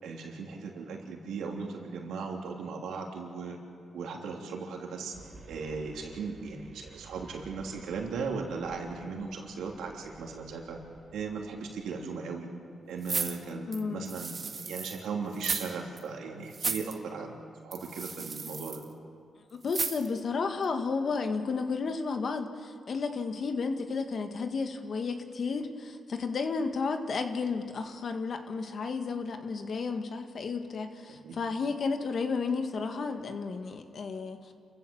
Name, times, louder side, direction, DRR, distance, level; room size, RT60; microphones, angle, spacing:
voice 1, 0.0-3.6 3.9-5.1 5.5-10.8 11.1-12.5 12.9-18.8 31.1-31.4, right 4 dB, 90° right, 0 dB, 3.2 m, -37 dB
sound 1, 5.1-12.0, right 3 dB, 60° right, 3.7 m, -53 dB
sound 2, 13.0-15.0 15.3-15.7 16.0-16.1 16.5-16.9 17.7-18.8 19.7-20.2 20.6-20.7, right 4 dB, 45° right, 1.7 m, -34 dB
voice 2, 13.7-14.1 19.6-34.5, left 4 dB, 60° left, 6 dB, 1.8 m, -32 dB
29.0 x 15.5 x 7.2 m, 2.3 s
cardioid pair, 70°, 0 cm